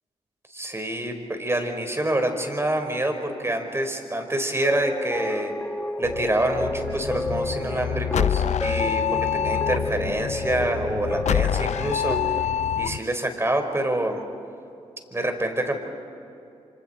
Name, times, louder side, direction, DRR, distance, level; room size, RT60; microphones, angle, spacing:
voice 1, 0.5-5.5 6.0-12.5 12.8-14.2 15.1-15.7, right 1 dB, 20° right, 5 dB, 4.5 m, -27 dB
sound 1, 4.6-12.5, left 1 dB, 10° left, 1.2 m, -31 dB
sound 2, 6.0-13.0, left 9 dB, 60° left, 0.5 m, -27 dB
27.0 x 26.5 x 4.3 m, 2.7 s
supercardioid pair, 45°, 13 cm